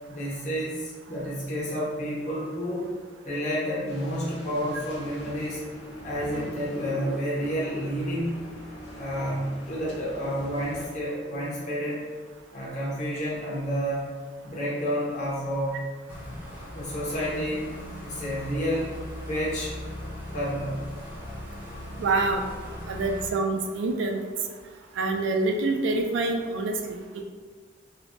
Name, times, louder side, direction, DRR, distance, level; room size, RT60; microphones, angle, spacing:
voice 1, 0.1-2.9 3.2-5.6 6.0-8.4 9.0-12.1 12.5-14.0 14.4-15.9 16.7-17.7 18.0-18.9 19.3-19.7 20.3-20.8, equal, 40° left, -6 dB, 0.9 m, -30 dB
sound 1, 3.9-10.9, equal, 75° left, 0.7 m, -41 dB
sound 2, 16.1-23.3, left 1 dB, 10° right, 0.6 m, -39 dB
voice 2, 22.0-22.4 22.9-24.2 25.0-27.2, right 3 dB, 75° right, 4 dB, 0.3 m, -26 dB
3.2 x 2.0 x 2.5 m, 1.5 s
head